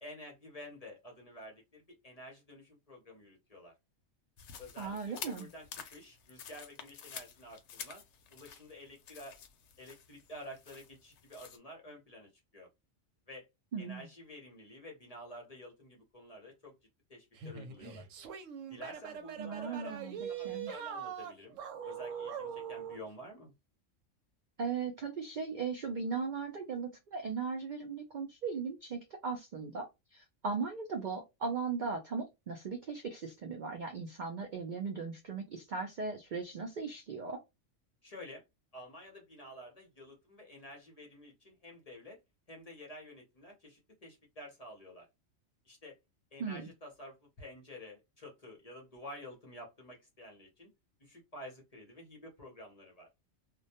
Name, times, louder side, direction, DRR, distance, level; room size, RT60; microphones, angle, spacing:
voice 1, 0.0-3.7 4.6-8.0 8.3-9.4 9.8-12.7 13.3-13.5 13.8-16.7 17.1-18.1 18.7-21.6 21.8-23.5 38.0-38.4 38.7-42.2 42.5-45.1 45.6-46.0 46.3-50.7 51.0-53.1, equal, 40° left, 0.6 m, -50 dB
sound 1, 4.4-11.6, left 7 dB, 70° left, 0.8 m, -49 dB
voice 2, 4.8-5.5 13.7-14.1 19.4-20.7 24.6-37.4 46.4-46.7, right 5 dB, 65° right, 0.4 m, -38 dB
sound 2, 17.4-23.0, right 7 dB, 85° right, 0.9 m, -42 dB
2.2 x 2.1 x 2.7 m
omnidirectional pair, 1.3 m